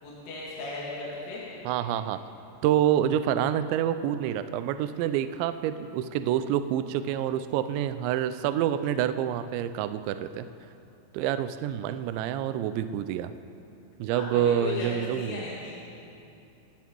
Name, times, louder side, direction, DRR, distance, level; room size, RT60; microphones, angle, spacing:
voice 1, 0.0-1.4 14.1-14.9 15.1-15.8, left 3 dB, 75° left, -6 dB, 4.8 m, -36 dB
voice 2, 1.7-2.2 2.6-10.5 11.1-13.3 14.0-15.4, right 10 dB, 85° right, 11 dB, 2.6 m, -27 dB
27.0 x 9.1 x 4.6 m, 2.7 s
omnidirectional pair, 5.8 m